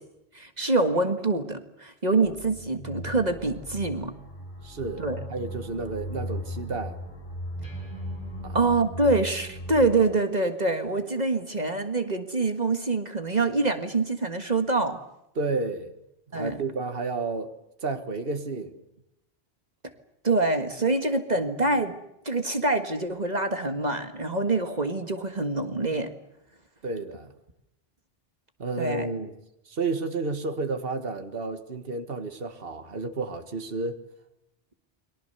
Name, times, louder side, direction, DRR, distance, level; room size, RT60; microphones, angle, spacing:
voice 1, 0.3-4.1 5.0-5.2 8.5-15.0 16.3-16.6 20.2-22.0 22.3-26.1 28.8-29.1, right 3 dB, 45° right, 7 dB, 1.8 m, -25 dB
sound 1, 2.2-10.0, equal, 55° left, 6.2 m, -37 dB
voice 2, 4.6-7.0 8.4-8.6 15.4-15.9 16.3-17.5 17.8-18.8 26.8-27.3 28.6-29.3 29.7-34.0, right 3 dB, 65° right, 7 dB, 1.8 m, -31 dB
29.5 x 23.0 x 6.8 m, 0.85 s
omnidirectional pair, 1.0 m